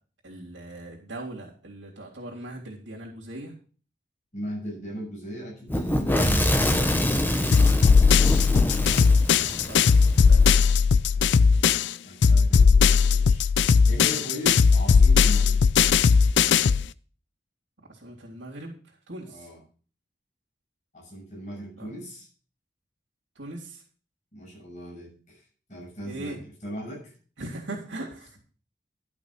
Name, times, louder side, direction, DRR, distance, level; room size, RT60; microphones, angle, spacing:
voice 1, 0.2-3.5 7.5-8.0 9.7-10.8 17.9-19.5 21.8-21.9 23.3-23.8 26.0-26.4 27.4-28.4, right 1 dB, 90° right, -2 dB, 3.2 m, -40 dB
voice 2, 4.3-7.0 8.6-9.4 11.1-11.7 12.0-13.4 13.8-15.6 19.3-19.6 20.9-22.3 24.3-25.4 25.7-27.1, equal, 40° left, -4 dB, 6.6 m, -39 dB
Fire / Explosion, 5.7-10.5, left 1 dB, 10° left, 0.9 m, -26 dB
sound 1, 7.5-11.9 12.2-16.9, left 5 dB, 80° left, 0.4 m, -18 dB
11.5 x 6.2 x 6.0 m, 0.39 s
head